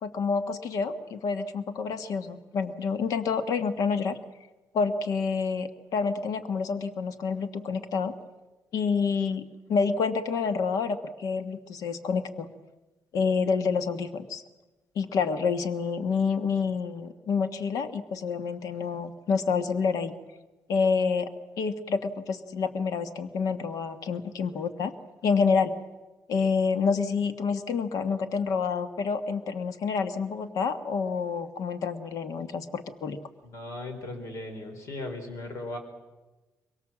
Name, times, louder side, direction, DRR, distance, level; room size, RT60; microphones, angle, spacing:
voice 1, 0.0-4.2 4.7-8.1 8.7-12.5 13.1-14.4 14.9-20.1 20.7-21.3 21.6-24.9 25.2-25.7 26.3-33.2, left 5 dB, 75° left, 10 dB, 1.4 m, -28 dB
voice 2, 33.4-35.8, left 2 dB, 55° left, 6 dB, 4.3 m, -37 dB
23.5 x 23.0 x 7.5 m, 1.2 s
cardioid pair, 155°, 6 cm